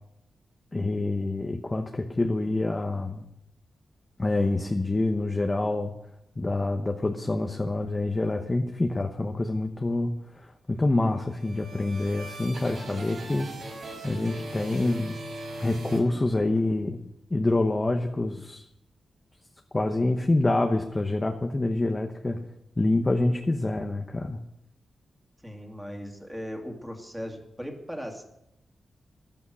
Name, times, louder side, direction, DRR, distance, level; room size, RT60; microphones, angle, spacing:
voice 1, 0.7-3.3 4.2-5.9 6.4-13.7 14.0-15.2 15.6-17.0 17.3-18.6 19.7-22.4 22.8-24.4, left 2 dB, 20° left, 4 dB, 1.0 m, -26 dB
sound 1, 11.1-16.7, right 1 dB, 80° right, 6.1 m, -40 dB
voice 2, 25.4-28.2, equal, 5° right, 3 dB, 2.5 m, -38 dB
14.5 x 12.5 x 6.2 m, 0.79 s
wide cardioid pair, 140°, 0 cm